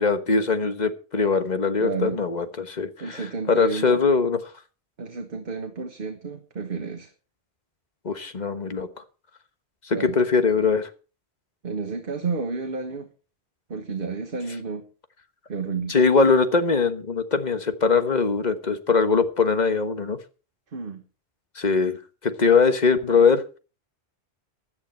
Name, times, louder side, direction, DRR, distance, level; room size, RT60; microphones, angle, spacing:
voice 1, 0.0-3.2 3.5-4.4 8.0-8.9 9.8-10.9 15.9-20.2 21.6-22.0 22.2-23.4, left 4 dB, 40° left, 9 dB, 1.4 m, -21 dB
voice 2, 1.8-2.2 3.0-4.0 5.0-7.1 9.9-10.2 11.6-13.1 13.7-14.9 15.5-15.9 20.7-21.0, right 4 dB, 55° right, 6 dB, 1.5 m, -31 dB
16.0 x 10.5 x 4.4 m, 0.35 s
omnidirectional pair, 1.1 m